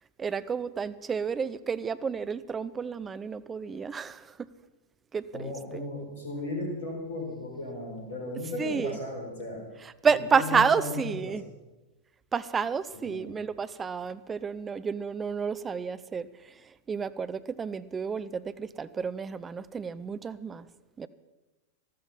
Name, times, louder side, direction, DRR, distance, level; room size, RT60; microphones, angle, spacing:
voice 1, 0.2-4.5 5.1-5.8 8.6-9.0 10.0-11.4 12.3-16.5 16.9-20.7 21.0-21.1, right 6 dB, 20° right, 14 dB, 0.6 m, -30 dB
voice 2, 5.3-9.6 10.3-11.4 12.9-13.3, left 2 dB, 65° left, 1 dB, 4.2 m, -35 dB
13.0 x 13.0 x 5.5 m, 1.1 s
figure-of-eight pair, 90°, 0 cm